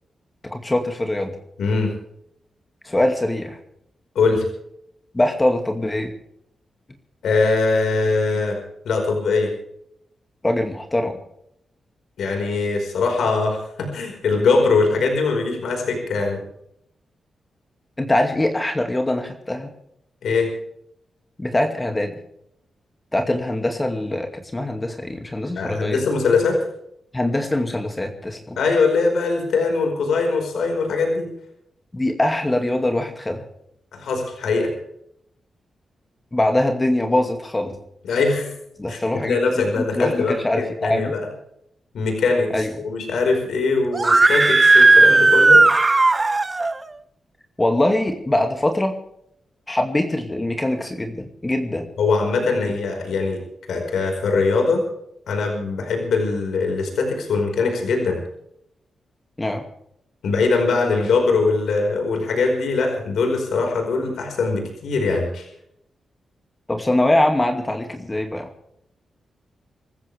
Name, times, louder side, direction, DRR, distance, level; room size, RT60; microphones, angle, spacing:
voice 1, 0.5-1.3 2.9-3.6 5.1-6.1 10.4-11.2 18.0-19.7 21.4-22.1 23.1-26.0 27.1-28.6 31.9-33.4 36.3-37.7 38.8-41.2 42.5-42.7 47.6-48.9 49.7-51.9 59.4-59.6 66.7-68.5, left 1 dB, 20° left, 4 dB, 2.3 m, -22 dB
voice 2, 1.6-1.9 4.1-4.5 7.2-8.6 8.8-9.5 12.2-16.4 20.2-20.5 25.6-26.6 28.6-31.3 33.9-34.7 38.0-38.5 38.9-39.0 39.3-41.2 41.9-45.7 52.0-53.4 53.7-54.8 55.3-58.2 60.2-65.5, left 4 dB, 85° left, 3 dB, 4.9 m, -21 dB
Screaming, 43.9-46.7, right 3 dB, 30° right, 0.8 m, -14 dB
26.0 x 14.5 x 3.5 m, 0.76 s
cardioid pair, 80°, 0 cm